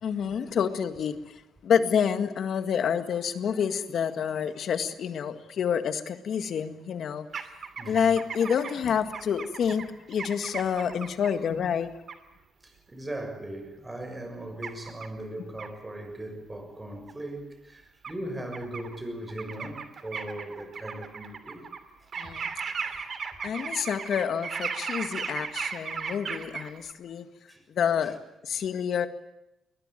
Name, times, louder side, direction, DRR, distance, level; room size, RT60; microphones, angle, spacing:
voice 1, 0.0-1.3 1.6-7.3 7.9-11.9 22.2-22.5 23.4-27.3 27.7-28.2 28.4-29.1, left 7 dB, 65° left, 1.9 m, -28 dB
sound 1, 7.3-11.3 12.1-12.2 14.6-15.1 15.6-15.7 17.1-17.2 18.0-18.1 18.5-19.0 19.3-21.8 22.1-26.9, right 5 dB, 50° right, 2.7 m, -36 dB
voice 2, 7.8-8.1 12.6-21.6 22.0-22.1 27.5-27.6, right 1 dB, 15° right, 6.6 m, -38 dB
22.0 x 21.0 x 9.1 m
cardioid pair, 90°, 0 cm